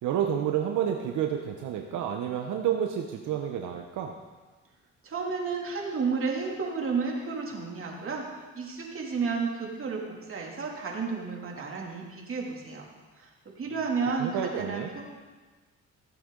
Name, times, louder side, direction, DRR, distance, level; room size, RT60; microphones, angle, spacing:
voice 1, 0.0-4.2 14.2-14.9, right 9 dB, 80° right, 3 dB, 0.9 m, -29 dB
voice 2, 5.0-8.3 8.5-12.9 13.2-15.0, right 4 dB, 45° right, -1 dB, 2.6 m, -32 dB
15.5 x 7.9 x 3.8 m, 1.3 s
cardioid pair, 90°, 30 cm